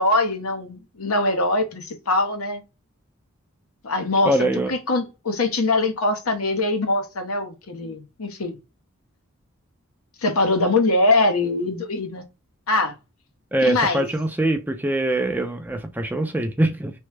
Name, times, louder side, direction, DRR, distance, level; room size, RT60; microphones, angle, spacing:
voice 1, 0.0-2.6 3.8-8.6 10.2-12.2 12.7-12.9 13.6-14.1, left 2 dB, 80° left, 0.8 m, -22 dB
voice 2, 4.3-4.7 13.5-16.9, right 1 dB, 10° right, 0.4 m, -23 dB
3.1 x 2.0 x 3.2 m
head